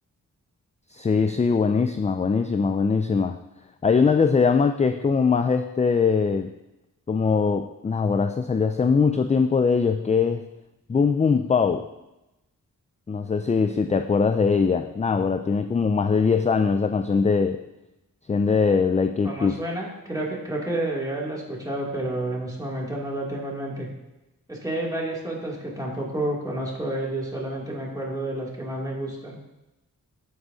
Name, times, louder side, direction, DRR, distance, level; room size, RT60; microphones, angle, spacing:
voice 1, 0.9-3.4 3.8-6.5 7.1-10.5 10.9-11.9 13.1-17.6 18.3-19.6, left 5 dB, 20° left, 8 dB, 0.3 m, -21 dB
voice 2, 19.2-23.9 24.5-29.4, right 1 dB, 10° right, -4 dB, 2.5 m, -30 dB
14.0 x 4.7 x 2.7 m, 0.96 s
cardioid pair, 60°, 34 cm